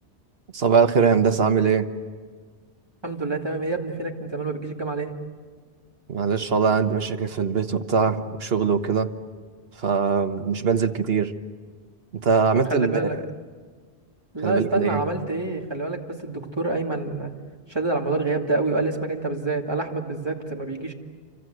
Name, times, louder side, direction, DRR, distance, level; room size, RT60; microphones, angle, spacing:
voice 1, 0.5-1.9 6.1-9.1 9.8-11.3 12.2-13.2 14.4-15.0, right 6 dB, 65° right, 8 dB, 1.4 m, -22 dB
voice 2, 3.0-5.1 12.7-13.2 14.3-17.3 17.7-20.9, right 2 dB, 25° right, 1 dB, 2.5 m, -27 dB
28.5 x 25.0 x 7.9 m, 1.6 s
omnidirectional pair, 1.1 m